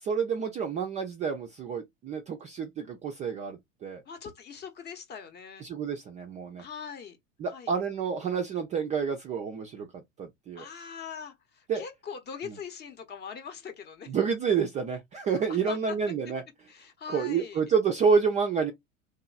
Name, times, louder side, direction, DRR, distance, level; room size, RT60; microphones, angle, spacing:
voice 1, 0.0-4.0 5.6-6.6 7.4-9.9 10.2-10.7 11.7-11.8 12.5-12.6 14.1-16.4 17.1-18.7, right 6 dB, 20° right, 0.3 m, -29 dB
voice 2, 4.1-5.6 6.6-7.2 7.5-7.7 10.6-14.1 15.7-16.0 16.7-17.6, left 6 dB, 25° left, 0.7 m, -41 dB
2.9 x 2.3 x 2.4 m
figure-of-eight pair, 85°, 39 cm